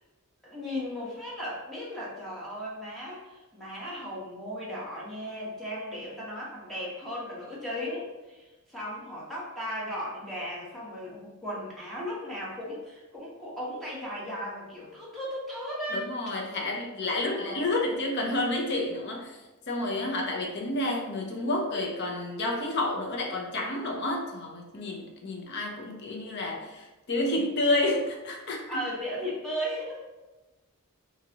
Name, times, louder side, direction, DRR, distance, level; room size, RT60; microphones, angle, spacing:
voice 1, 0.4-16.1 17.0-17.6 28.7-30.1, equal, ahead, -7 dB, 1.0 m, -36 dB
voice 2, 15.9-19.3 19.7-28.8, left 2 dB, 50° left, 0 dB, 0.6 m, -30 dB
3.8 x 2.8 x 2.8 m, 1.1 s
head